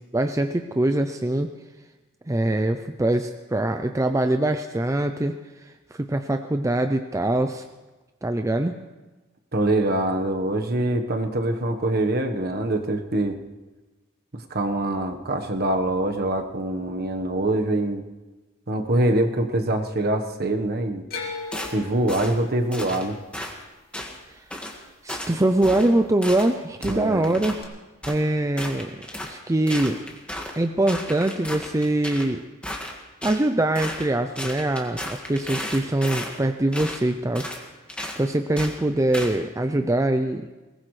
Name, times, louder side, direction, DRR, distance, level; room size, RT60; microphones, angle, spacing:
voice 1, 0.1-1.5 2.3-5.4 5.6-7.6 8.2-8.7 25.0-27.6 28.1-30.0 30.6-32.4 33.2-37.5 38.2-40.5, right 1 dB, 15° right, 7 dB, 0.5 m, -23 dB
voice 2, 9.5-13.4 14.3-18.0 18.7-21.0 21.7-23.2 26.9-27.2, right 1 dB, 50° right, 5 dB, 1.3 m, -24 dB
sound 1, 21.1-25.3 25.6-26.3 27.6-27.7, left 4 dB, 45° left, 2.4 m, -39 dB
sound 2, 21.5-21.8 22.1-22.4 22.7-23.0 23.3-23.5 23.9-24.1 24.5-24.8 25.1-25.3 25.6-25.9 26.2-26.5 26.8-27.6 28.0-28.2 28.6-29.3 29.7-30.6 30.9-32.3 32.6-33.4 33.7-34.1 34.4-36.3 36.7-37.0 37.3-37.6 37.9-38.2 38.6-38.7 39.1-39.3, left 1 dB, 5° left, 1.8 m, -34 dB
21.5 x 19.0 x 3.3 m, 1.2 s
head